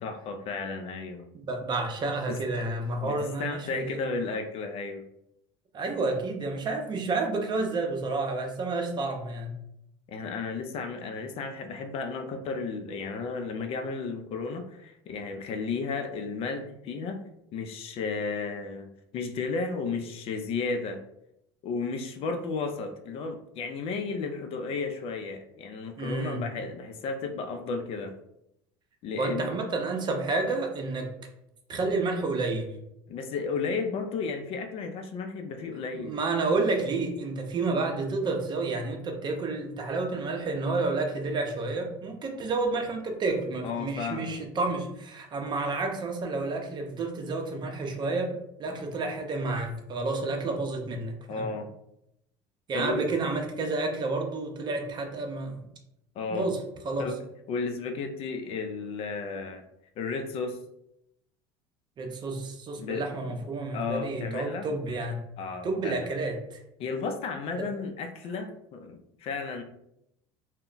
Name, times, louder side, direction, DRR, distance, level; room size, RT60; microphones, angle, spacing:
voice 1, 0.0-1.3 2.3-2.4 3.0-5.0 10.1-17.2 17.5-21.0 21.6-28.1 29.0-29.5 33.1-36.1 43.6-44.4 51.3-51.7 52.7-53.0 56.2-56.5 57.0-57.2 57.5-59.6 60.0-60.6 62.8-63.0 63.7-64.7 65.4-66.0 66.8-69.6, left 4 dB, 55° left, 6 dB, 0.4 m, -33 dB
voice 2, 1.3-4.0 5.7-9.5 26.0-26.4 29.2-31.1 31.7-32.7 35.9-51.5 52.7-55.7 56.3-56.6 56.8-57.1 62.0-65.2 65.6-66.6 67.6-67.7, right 3 dB, 40° right, 3 dB, 0.6 m, -30 dB
2.1 x 2.1 x 3.8 m, 0.80 s
supercardioid pair, 90°, 12 cm